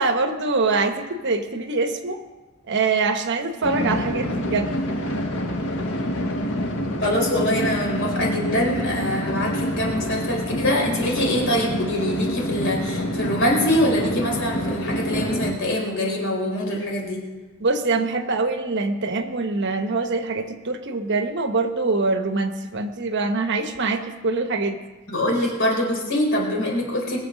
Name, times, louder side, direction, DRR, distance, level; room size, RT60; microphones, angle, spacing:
voice 1, 0.0-2.2 2.7-4.7 17.6-24.8 25.3-25.4, right 3 dB, 55° right, 8 dB, 1.0 m, -24 dB
sound 1, 3.6-15.5, equal, 85° left, 1.6 m, -27 dB
voice 2, 7.0-17.2 25.1-27.2, equal, 60° left, -1 dB, 4.2 m, -24 dB
21.5 x 7.1 x 6.3 m, 1.2 s
head